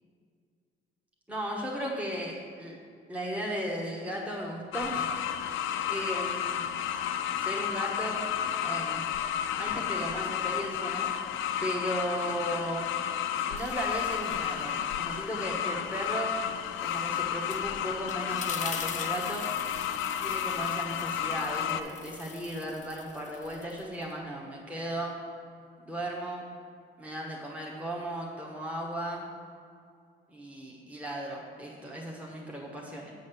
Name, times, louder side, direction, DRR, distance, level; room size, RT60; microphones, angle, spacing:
voice 1, 1.3-2.8 3.1-5.2 5.6-6.7 7.4-8.2 8.6-9.0 9.5-11.1 11.6-12.8 13.4-16.3 16.8-19.4 20.2-25.1 25.8-26.4 27.0-29.2 30.3-33.1, right 1 dB, 5° right, -3 dB, 1.1 m, -36 dB
sound 1, 4.7-21.8, left 9 dB, 80° left, 0.4 m, -32 dB
sound 2, 13.6-15.1 15.5-24.2, left 5 dB, 40° left, 0.6 m, -44 dB
7.7 x 4.1 x 6.6 m, 2.3 s
cardioid pair, 90°, 20 cm